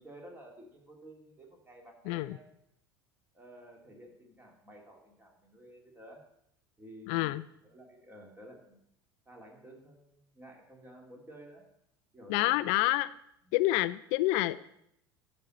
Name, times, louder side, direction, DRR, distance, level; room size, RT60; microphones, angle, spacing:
voice 1, 0.0-2.5 3.3-6.2 6.8-8.8 9.3-11.6 12.1-12.6 13.4-13.5, equal, 15° right, 1 dB, 2.5 m, -52 dB
voice 2, 2.1-2.4 7.1-7.4 12.3-13.1 13.5-14.6, left 17 dB, 50° left, 16 dB, 0.4 m, -28 dB
12.0 x 4.4 x 7.7 m, 0.75 s
figure-of-eight pair, 70°, 13 cm